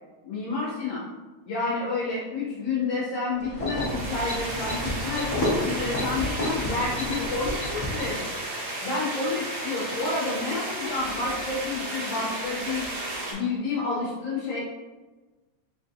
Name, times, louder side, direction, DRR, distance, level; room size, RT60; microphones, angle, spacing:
voice 1, 0.2-1.1 1.5-8.3 8.8-12.9 13.3-14.6, left 3 dB, 70° left, -7 dB, 1.7 m, -29 dB
sound 1, 3.4-8.3, left 1 dB, 45° left, 1.0 m, -31 dB
sound 2, 3.6-13.3, right 1 dB, 75° right, 1.0 m, -34 dB
4.4 x 4.1 x 2.6 m, 1.2 s
omnidirectional pair, 3.3 m